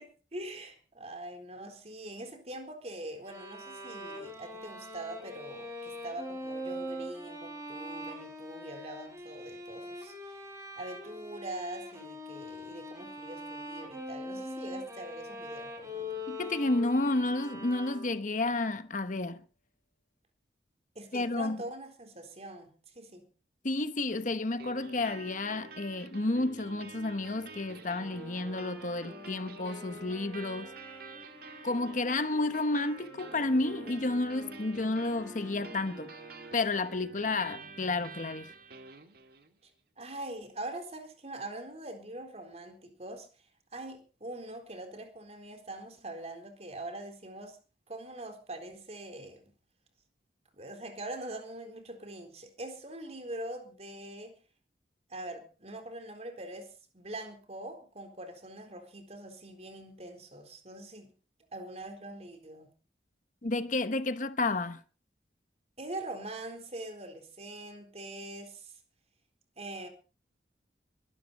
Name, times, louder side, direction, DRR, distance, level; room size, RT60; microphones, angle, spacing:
voice 1, 0.0-10.4 10.8-16.2 21.0-23.3 39.6-39.7 40.0-43.5 43.7-47.6 47.9-49.5 50.5-54.4 55.1-61.1 61.5-62.7 65.8-68.8 69.6-69.9, right 1 dB, 35° right, 4.0 m, -43 dB
sound 1, 3.2-18.4, left 1 dB, 15° right, 5.4 m, -42 dB
voice 2, 16.3-19.4 21.1-21.6 23.6-30.7 31.6-36.1 36.5-38.5 63.4-64.8, left 2 dB, 45° left, 1.0 m, -31 dB
sound 2, 24.6-39.6, right 3 dB, 55° right, 2.1 m, -48 dB
sound 3, 27.9-37.1, equal, 15° left, 5.8 m, -51 dB
22.5 x 12.5 x 4.2 m
head